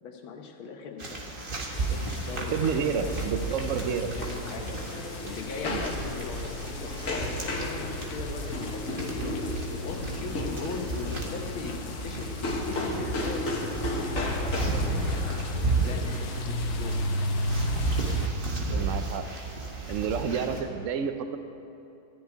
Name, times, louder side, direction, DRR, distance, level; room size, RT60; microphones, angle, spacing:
voice 1, 0.0-1.5 1.9-3.6 4.2-4.8 5.2-7.1 7.5-9.2 9.7-15.3 15.8-17.2 18.7-18.9, left 5 dB, 80° left, 2 dB, 1.9 m, -40 dB
sound 1, 1.0-20.6, right 3 dB, 30° right, 1.5 m, -34 dB
sound 2, 1.7-18.3, left 2 dB, 60° left, 1.2 m, -35 dB
voice 2, 2.5-4.1 5.7-5.9 18.7-19.2 19.9-21.4, right 6 dB, 75° right, 8 dB, 0.7 m, -30 dB
sound 3, 4.5-16.9, left 1 dB, 45° left, 1.7 m, -35 dB
14.0 x 7.3 x 9.5 m, 2.7 s
omnidirectional pair, 2.2 m